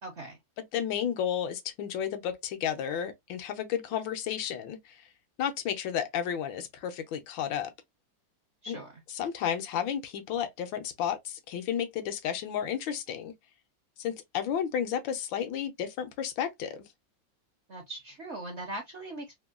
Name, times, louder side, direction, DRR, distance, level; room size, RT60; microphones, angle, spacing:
voice 1, 0.0-0.4 8.6-9.0 17.7-19.4, right 1 dB, 60° right, 0.7 m, -40 dB
voice 2, 0.7-5.0 5.4-7.7 8.7-8.8 9.2-13.3 14.0-16.8, left 9 dB, 80° left, 1.4 m, -32 dB
3.5 x 2.2 x 2.3 m
omnidirectional pair, 2.1 m